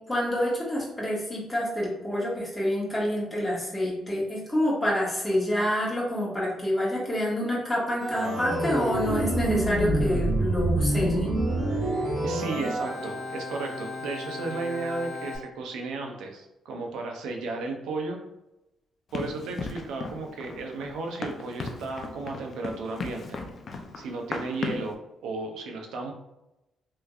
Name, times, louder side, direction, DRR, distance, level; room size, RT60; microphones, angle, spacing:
voice 1, 0.1-11.3, left 1 dB, 10° left, -5 dB, 1.4 m, -27 dB
Organ, 8.0-15.4, right 1 dB, 50° right, 1.1 m, -28 dB
voice 2, 12.2-18.2 19.1-23.4 24.0-26.1, right 3 dB, 85° right, 2 dB, 0.6 m, -34 dB
Run, 19.1-24.9, left 3 dB, 50° left, 0.4 m, -36 dB
3.2 x 3.1 x 2.4 m, 0.93 s
cardioid pair, 90°, 0 cm